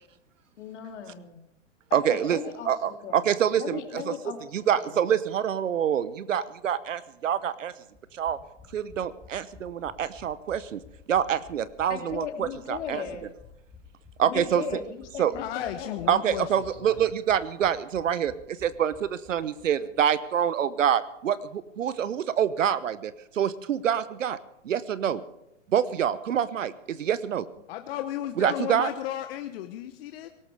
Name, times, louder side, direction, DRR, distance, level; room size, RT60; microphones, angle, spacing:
voice 1, 0.6-1.4 1.9-3.3 3.6-5.0 11.9-13.2 14.2-16.1, left 7 dB, 65° left, 4 dB, 2.8 m, -37 dB
voice 2, 1.9-2.4 2.7-4.1 4.5-7.7 8.1-8.4 8.7-10.8 11.1-13.0 14.2-14.6 15.2-15.3 16.1-24.4 24.6-25.2 25.7-27.5 28.4-28.9, right 9 dB, 80° right, 16 dB, 0.9 m, -26 dB
sound 1, 7.9-19.7 19.9-20.0 20.3-20.4, left 5 dB, 5° left, 3.5 m, -52 dB
voice 3, 15.3-17.0 27.7-30.3, left 12 dB, 50° left, 7 dB, 1.0 m, -34 dB
18.0 x 18.0 x 3.4 m, 0.87 s
hypercardioid pair, 120°, 38 cm